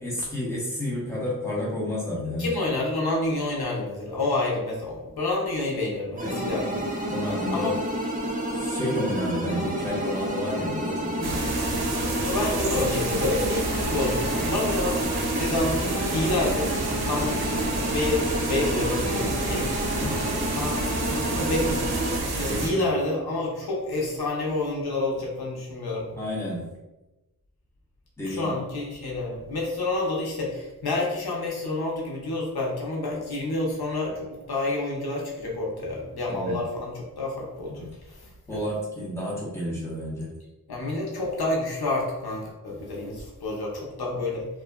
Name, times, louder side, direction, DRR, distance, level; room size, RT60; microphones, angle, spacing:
voice 1, 0.0-2.5 7.1-7.7 8.5-11.4 19.9-20.2 22.4-22.9 26.1-26.6 28.2-28.5 36.3-36.6 37.6-37.9 38.5-40.3, left 1 dB, 5° left, -6 dB, 0.9 m, -31 dB
voice 2, 2.4-6.8 7.5-7.8 12.2-15.0 15.3-15.8 16.1-16.7 17.0-17.4 17.9-19.7 20.5-21.8 22.3-26.1 28.2-38.6 40.7-44.5, left 2 dB, 80° left, -3 dB, 0.7 m, -28 dB
sound 1, 6.2-22.2, right 1 dB, 20° right, 0.5 m, -29 dB
sound 2, 11.2-22.7, right 2 dB, 80° right, 0.6 m, -30 dB
2.8 x 2.4 x 2.2 m, 1.0 s
wide cardioid pair, 70°, 38 cm